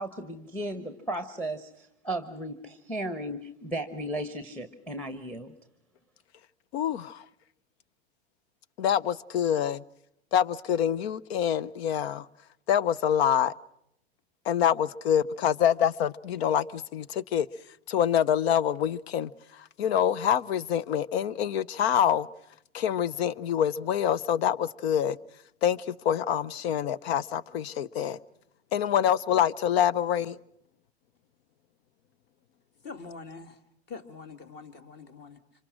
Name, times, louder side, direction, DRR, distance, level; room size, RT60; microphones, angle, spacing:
voice 1, 0.0-5.5, right 1 dB, 5° left, 1.1 m, -35 dB
voice 2, 6.7-7.2 8.8-9.8 10.3-12.3 12.7-13.5 14.5-17.5 17.9-19.3 19.8-22.3 22.7-25.2 25.6-28.2 28.7-30.4, left 9 dB, 70° left, 0.8 m, -26 dB
voice 3, 32.8-33.6 33.9-35.4, left 4 dB, 30° left, 2.0 m, -44 dB
26.0 x 24.5 x 6.3 m
supercardioid pair, 130°, 32 cm